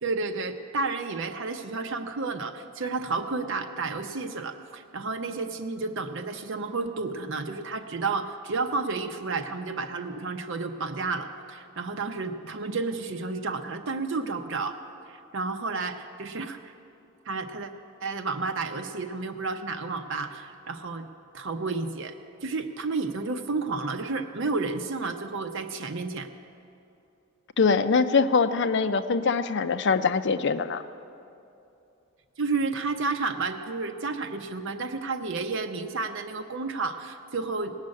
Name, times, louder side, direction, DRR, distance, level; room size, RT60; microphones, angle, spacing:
voice 1, 0.0-14.8 15.1-16.7 17.2-17.7 18.0-21.1 21.3-22.1 22.4-26.3 32.4-37.8, right 3 dB, 65° right, 5 dB, 0.7 m, -31 dB
voice 2, 27.6-30.8, left 4 dB, 55° left, 11 dB, 0.6 m, -23 dB
18.0 x 6.5 x 9.6 m, 2.6 s
head